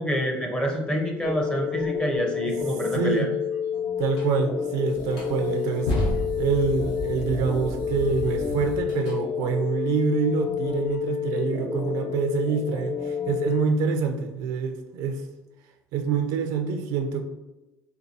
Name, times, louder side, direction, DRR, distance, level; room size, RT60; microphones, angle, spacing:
voice 1, 0.0-3.3, equal, 15° left, 1 dB, 0.6 m, -27 dB
sound 1, 1.2-13.6, left 7 dB, 50° left, 0.6 m, -29 dB
voice 2, 2.9-3.3 4.0-5.9 6.4-15.2 15.9-17.2, right 5 dB, 75° right, 5 dB, 0.4 m, -26 dB
sound 2, 4.1-4.3 4.9-9.2, left 1 dB, 75° left, 1.1 m, -31 dB
4.4 x 2.3 x 2.7 m, 1.0 s
cardioid pair, 110°, 6 cm